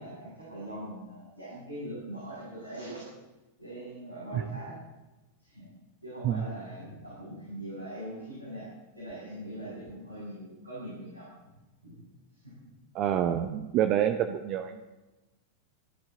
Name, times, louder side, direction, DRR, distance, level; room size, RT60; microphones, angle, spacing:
voice 1, 0.0-3.0 3.6-4.8 5.4-5.7 6.0-8.7 8.9-11.3 11.8-12.0 12.4-12.7, right 1 dB, 85° right, -7 dB, 7.0 m, -41 dB
voice 2, 12.9-14.8, right 10 dB, 40° right, 8 dB, 1.0 m, -27 dB
25.5 x 12.0 x 3.9 m, 1.1 s
figure-of-eight pair, 90°, 0 cm